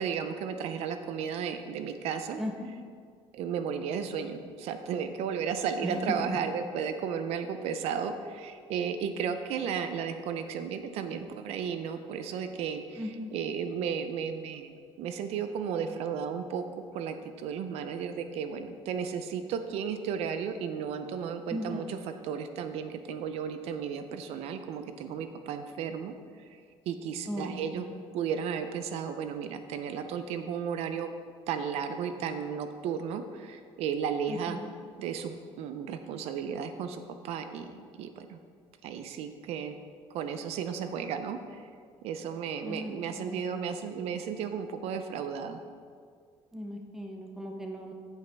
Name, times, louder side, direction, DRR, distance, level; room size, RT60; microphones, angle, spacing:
voice 1, 0.0-2.4 3.3-13.0 13.3-16.6 16.9-22.0 22.2-26.1 26.9-27.8 28.1-31.1 31.5-34.6 35.0-38.4 38.8-39.8 40.1-41.7 42.0-45.6, right 7 dB, 70° right, 8 dB, 0.5 m, -34 dB
voice 2, 2.4-2.7 5.8-6.4 13.0-13.3 21.5-21.9 27.3-28.0 34.3-34.7 42.6-43.5 46.5-47.9, equal, 5° right, 2 dB, 0.6 m, -37 dB
8.4 x 8.0 x 3.4 m, 2.1 s
cardioid pair, 170°, 11 cm